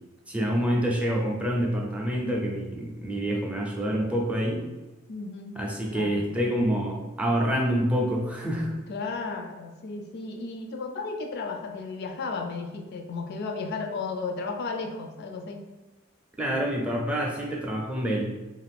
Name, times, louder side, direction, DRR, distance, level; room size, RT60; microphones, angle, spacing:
voice 1, 0.3-4.6 5.6-8.7 16.4-18.2, equal, 5° right, -2 dB, 0.5 m, -27 dB
voice 2, 5.1-5.6 5.9-6.2 8.9-15.6, left 4 dB, 55° left, 4 dB, 0.3 m, -34 dB
2.5 x 2.4 x 3.4 m, 1.1 s
head